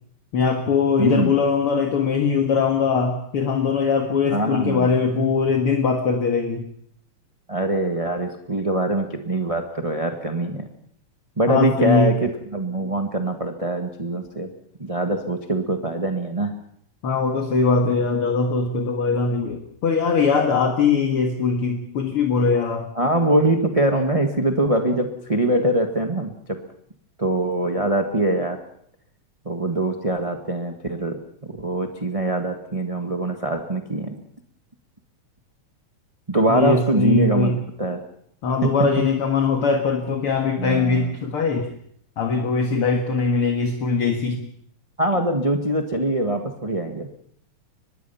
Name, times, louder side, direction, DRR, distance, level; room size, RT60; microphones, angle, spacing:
voice 1, 0.3-6.7 11.5-12.2 17.0-22.9 36.5-37.6 38.4-41.7 42.2-44.4, left 5 dB, 50° left, 4 dB, 2.3 m, -21 dB
voice 2, 1.0-1.4 4.3-4.9 7.5-10.7 11.4-14.5 14.8-16.5 22.9-26.6 27.2-28.6 29.4-31.2 31.4-34.1 36.3-38.0 38.8-38.9 40.6-41.1 45.0-47.1, right 1 dB, 20° right, 4 dB, 0.8 m, -23 dB
24.5 x 21.0 x 5.8 m, 0.68 s
omnidirectional pair, 3.7 m